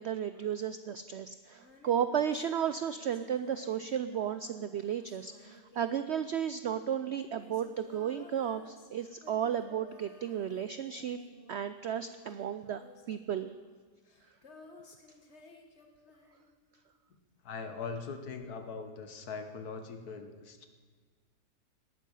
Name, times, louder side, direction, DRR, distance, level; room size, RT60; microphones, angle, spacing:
voice 1, 0.0-11.2 11.5-12.8 13.1-13.5, right 9 dB, 75° right, 11 dB, 0.6 m, -34 dB
Female singing, 1.5-16.9 18.4-18.5, left 2 dB, 45° left, 1.8 m, -56 dB
voice 2, 17.4-20.7, left 5 dB, 70° left, 7 dB, 1.7 m, -41 dB
18.0 x 12.0 x 5.5 m, 1.5 s
omnidirectional pair, 1.7 m